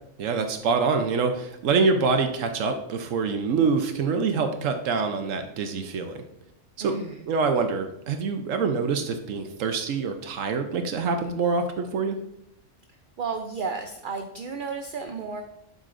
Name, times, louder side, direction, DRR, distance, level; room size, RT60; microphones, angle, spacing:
voice 1, 0.2-6.2 6.8-6.9 7.3-12.2, right 4 dB, 85° right, 6 dB, 1.1 m, -25 dB
voice 2, 6.8-7.3 12.9-15.4, right 5 dB, 55° right, 5 dB, 0.7 m, -33 dB
12.0 x 5.4 x 2.5 m, 0.81 s
omnidirectional pair, 1.3 m